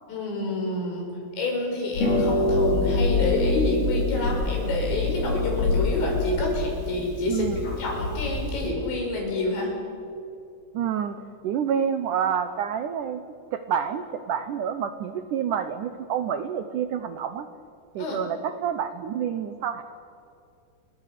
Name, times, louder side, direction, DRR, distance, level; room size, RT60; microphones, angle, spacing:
voice 1, 0.1-1.1 1.4-9.7 18.0-18.2, left 2 dB, 85° left, 0 dB, 8.3 m, -28 dB
Harp, 1.9-8.7, left 2 dB, 60° left, 8.2 m, -25 dB
voice 2, 7.3-7.7 10.7-13.2 13.5-17.5 18.0-19.8, right 8 dB, 90° right, 9 dB, 1.7 m, -28 dB
30.0 x 23.5 x 6.8 m, 2.5 s
omnidirectional pair, 5.0 m